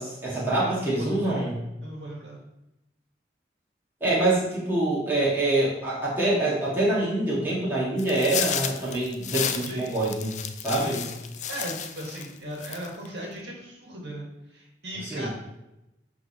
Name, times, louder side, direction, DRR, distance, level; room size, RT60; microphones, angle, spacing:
voice 1, 0.0-1.6 4.0-10.4 10.6-11.0 15.0-15.3, right 2 dB, 10° right, -8 dB, 1.9 m, -25 dB
voice 2, 0.6-1.5 1.8-2.4 9.5-10.0 10.8-11.0 11.5-15.3, right 1 dB, 75° right, -3 dB, 1.8 m, -38 dB
sound 1, 8.0-12.3 12.6-13.1, left 8 dB, 40° left, 0.4 m, -32 dB
10.5 x 3.6 x 3.0 m, 0.91 s
head